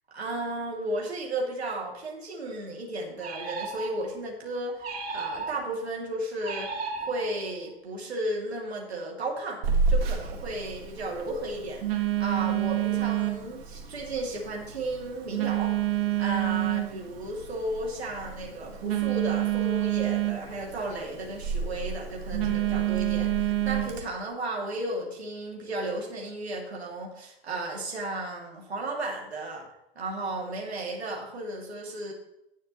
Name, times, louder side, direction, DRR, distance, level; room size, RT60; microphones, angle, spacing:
voice 1, 0.1-4.9 5.1-29.7 30.0-32.1, right 1 dB, 90° right, -2 dB, 2.7 m, -34 dB
sound 1, 3.2-4.2 4.8-5.8 6.4-7.6, right 3 dB, 30° right, 2.7 m, -36 dB
Telephone, 9.6-24.0, right 10 dB, 65° right, 2.0 m, -29 dB
17.5 x 7.5 x 3.1 m, 0.87 s
hypercardioid pair, 85°, 31 cm